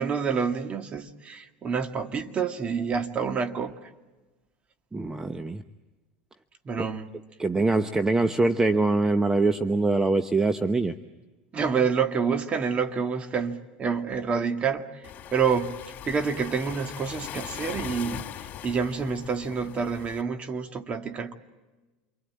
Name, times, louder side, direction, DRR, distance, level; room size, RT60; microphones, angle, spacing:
voice 1, 0.0-3.9 6.7-7.1 11.5-14.9 15.3-15.8 16.1-18.3 18.6-21.3, right 6 dB, 30° right, 2.0 m, -28 dB
voice 2, 4.9-5.6 6.8-6.9 7.4-11.0, right 3 dB, 15° right, 0.9 m, -23 dB
Waves surf, 15.0-20.2, left 10 dB, 45° left, 3.3 m, -40 dB
28.5 x 23.5 x 8.7 m
hypercardioid pair, 90°, 4 cm